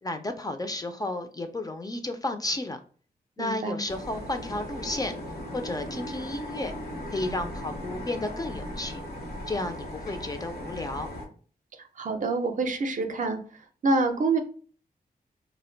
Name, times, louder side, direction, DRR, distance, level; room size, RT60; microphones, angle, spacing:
voice 1, 0.0-2.8 3.4-5.1 5.5-6.7 7.1-9.0 9.5-11.1, left 2 dB, 25° left, 6 dB, 0.4 m, -32 dB
voice 2, 3.4-3.8 12.0-13.4 13.8-14.4, right 3 dB, 50° right, 6 dB, 0.5 m, -26 dB
sound 1, 3.9-11.3, left 1 dB, 80° left, 0.9 m, -37 dB
2.5 x 2.1 x 3.8 m, 0.41 s
wide cardioid pair, 110°, 16 cm